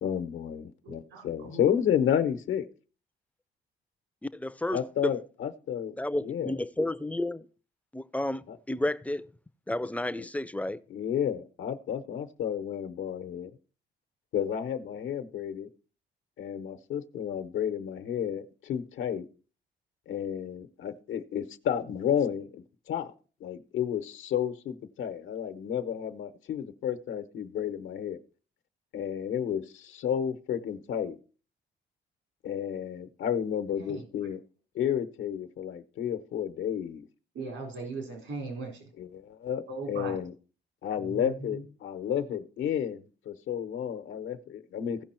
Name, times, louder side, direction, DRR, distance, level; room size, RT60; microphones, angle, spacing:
voice 1, 0.0-2.7 4.7-5.9 6.2-6.6 8.5-8.6 10.9-13.5 14.3-15.7 16.4-19.2 20.1-23.1 23.4-28.2 28.9-31.2 32.4-34.4 34.7-37.1 39.0-40.3 40.8-45.0, left 9 dB, 80° left, 1.0 m, -31 dB
voice 2, 0.8-1.7 33.8-34.0 37.3-38.9 39.7-40.2 41.0-41.6, right 3 dB, 80° right, 3.8 m, -39 dB
voice 3, 4.3-5.1 6.0-7.5 7.9-9.3 9.7-10.8, left 1 dB, 5° left, 0.5 m, -31 dB
16.0 x 5.3 x 4.4 m
cardioid pair, 90°, 20 cm